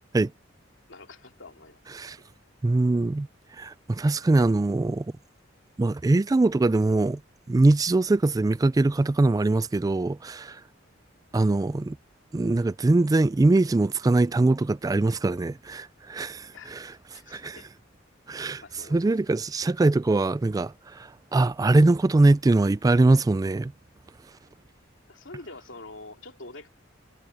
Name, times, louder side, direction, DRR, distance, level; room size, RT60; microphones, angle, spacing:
voice 1, 0.9-2.1 16.5-17.7 18.3-19.1 25.1-26.7, left 3 dB, 75° left, 2.9 m, -46 dB
voice 2, 2.6-3.3 3.6-5.1 5.8-7.2 7.5-10.6 11.3-12.0 12.3-16.9 17.3-17.6 18.3-18.6 18.9-23.7, right 2 dB, 20° right, 0.3 m, -22 dB
head